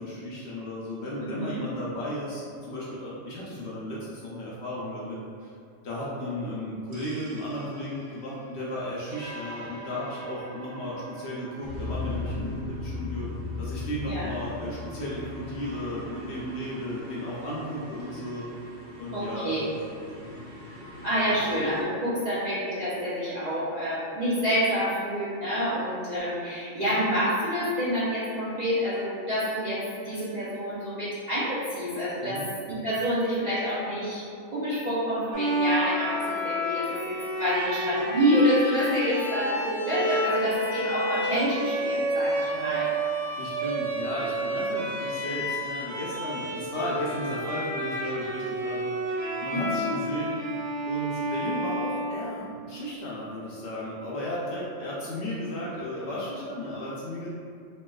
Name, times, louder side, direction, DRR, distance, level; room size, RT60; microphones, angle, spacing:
voice 1, 0.0-5.5 5.8-13.3 13.6-18.5 19.0-20.4 32.2-32.4 42.4-42.7 43.4-48.9 49.4-50.4 50.9-57.3, equal, 65° left, -7 dB, 0.7 m, -35 dB
voice 2, 1.2-1.6 14.0-14.3 19.1-19.6 21.0-32.4 32.7-34.2 34.5-42.9 49.5-49.8, equal, 45° right, -12 dB, 0.5 m, -27 dB
sound 1, 6.9-21.8, left 2 dB, 70° right, 0.9 m, -39 dB
Bowed string instrument, 35.3-52.7, equal, 85° right, 1.1 m, -30 dB
3.1 x 2.8 x 2.3 m, 2.3 s
omnidirectional pair, 1.4 m